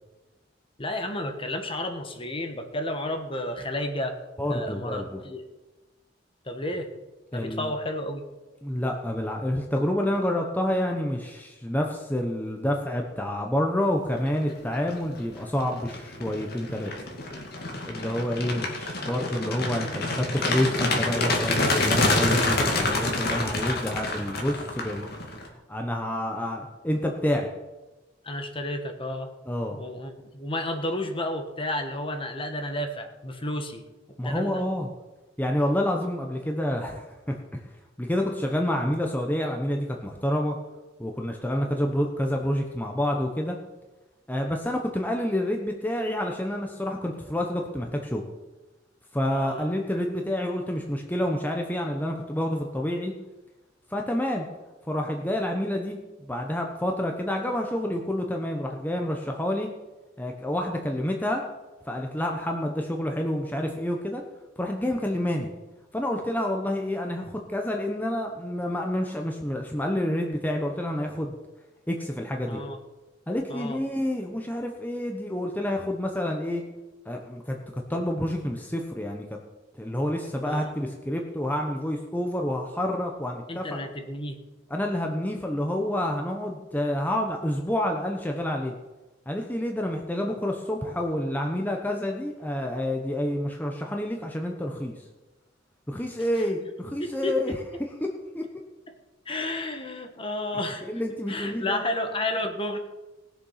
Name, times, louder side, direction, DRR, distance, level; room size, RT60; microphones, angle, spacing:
voice 1, 0.8-4.2 4.5-5.4 6.4-6.9 7.3-8.2 28.2-29.3 29.7-33.8 34.2-34.6 49.3-49.7 72.5-72.8 73.5-73.8 80.4-80.6 83.5-84.4 96.4-96.5 97.0-97.3 98.9-99.0 99.3-100.9 101.3-102.8, left 1 dB, 30° left, 6 dB, 1.4 m, -31 dB
voice 2, 4.4-5.2 7.3-7.7 8.6-16.9 17.8-25.1 25.7-27.5 29.5-29.8 34.2-34.9 35.4-37.6 38.0-40.6 41.0-43.6 44.3-48.2 49.1-53.1 53.9-54.5 54.9-59.7 60.2-61.4 61.9-64.2 64.6-65.5 65.9-71.3 71.9-72.6 73.3-76.6 77.0-79.4 79.8-83.8 84.7-88.7 89.3-95.0 95.9-98.1 98.3-98.5 100.8-101.8, left 1 dB, 10° left, 2 dB, 1.0 m, -28 dB
sound 1, 14.6-14.9 15.4-25.5, left 2 dB, 55° left, 2.3 m, -27 dB
19.0 x 7.1 x 5.7 m, 1.1 s
head